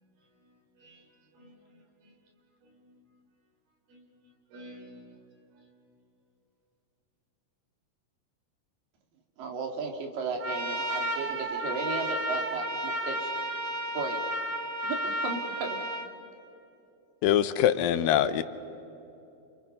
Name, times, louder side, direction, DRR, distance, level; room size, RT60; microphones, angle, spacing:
voice 1, 0.4-1.0 1.3-1.6 2.0-2.1 2.6-3.0 3.9-4.0 4.5-5.2, equal, 90° right, 1 dB, 6.1 m, -51 dB
voice 2, 9.4-13.3 13.9-14.2 14.8-15.8, right 4 dB, 70° right, 2 dB, 4.1 m, -35 dB
Trumpet, 10.4-16.1, right 1 dB, 40° right, 1.8 m, -32 dB
voice 3, 17.2-18.4, left 10 dB, 80° left, 12 dB, 2.5 m, -23 dB
29.5 x 28.0 x 5.5 m, 2.8 s
omnidirectional pair, 4.1 m